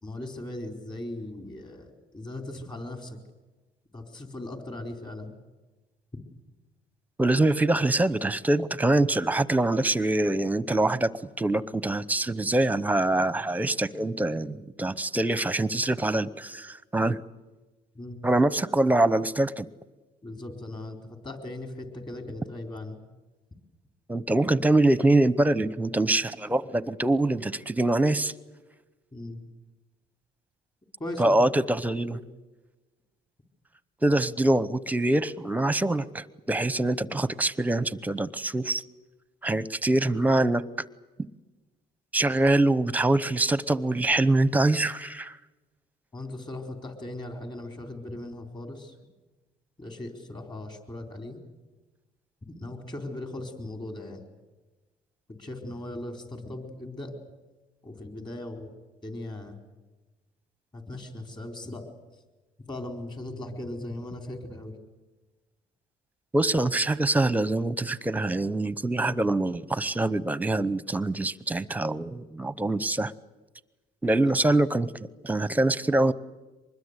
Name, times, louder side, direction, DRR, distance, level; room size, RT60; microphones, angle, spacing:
voice 1, 0.0-3.2 3.9-5.3 17.9-18.2 20.2-23.0 29.1-29.4 31.0-31.4 32.1-32.2 46.1-48.9 49.8-51.4 52.5-54.2 55.4-57.1 57.8-58.7 59.0-59.6 60.7-61.9 62.7-64.8 69.0-69.1 74.2-74.6, left 1 dB, 25° left, 5 dB, 4.2 m, -38 dB
voice 2, 7.2-11.1 11.4-17.2 18.2-19.7 24.1-28.3 31.2-32.2 34.0-38.8 39.4-40.6 42.1-45.4 66.3-73.1 74.0-74.9 75.2-76.1, right 2 dB, 10° right, 17 dB, 0.9 m, -24 dB
24.5 x 21.0 x 8.2 m, 1.2 s
cardioid pair, 110°, 17 cm